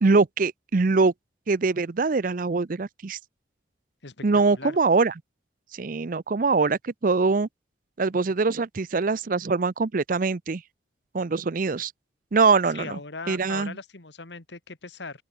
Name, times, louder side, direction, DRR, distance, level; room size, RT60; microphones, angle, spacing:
voice 1, 0.0-1.1 1.5-3.2 4.2-5.1 5.7-7.5 8.0-10.6 11.1-11.9 12.3-13.0 13.3-13.7, right 4 dB, 45° right, 0.5 m, -23 dB
voice 2, 12.7-15.2, left 3 dB, 70° left, 1.9 m, -39 dB
open air
head